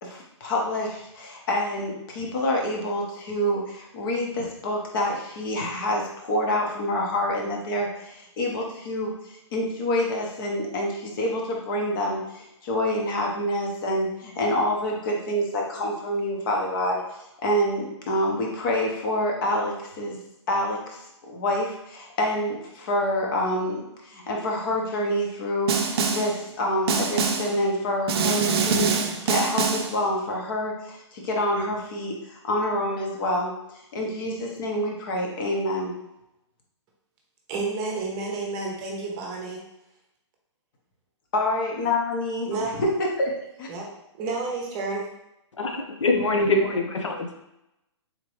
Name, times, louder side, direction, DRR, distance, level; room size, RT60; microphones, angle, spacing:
voice 1, 0.0-20.2 20.5-21.0 21.3-33.5 33.9-36.0 41.3-43.3 43.6-43.7, left 1 dB, 45° left, 0 dB, 0.9 m, -27 dB
Snare drum, 25.7-26.4 26.9-27.6 28.1-30.0, right 5 dB, 55° right, 0.5 m, -24 dB
voice 2, 37.5-39.6 42.5-42.8 43.7-43.9 44.2-45.1, right 3 dB, 25° right, -1 dB, 0.8 m, -30 dB
voice 3, 45.6-47.4, left 2 dB, 90° left, 3 dB, 0.7 m, -24 dB
3.7 x 2.9 x 3.1 m, 0.87 s
hypercardioid pair, 140°, 15 cm